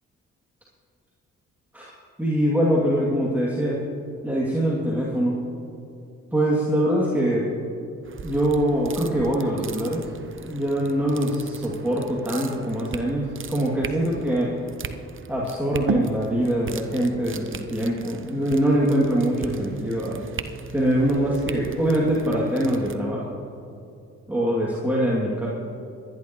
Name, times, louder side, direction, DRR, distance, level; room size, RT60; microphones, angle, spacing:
voice 1, 2.2-3.8 4.2-5.4 6.3-7.5 8.2-10.1 10.4-14.5 15.3-20.2 20.7-23.4 24.3-25.5, right 1 dB, 5° right, -5 dB, 2.6 m, -23 dB
sound 1, 8.0-23.0, right 5 dB, 40° right, 0.9 m, -37 dB
24.5 x 11.0 x 3.1 m, 2.6 s
supercardioid pair, 55°, 32 cm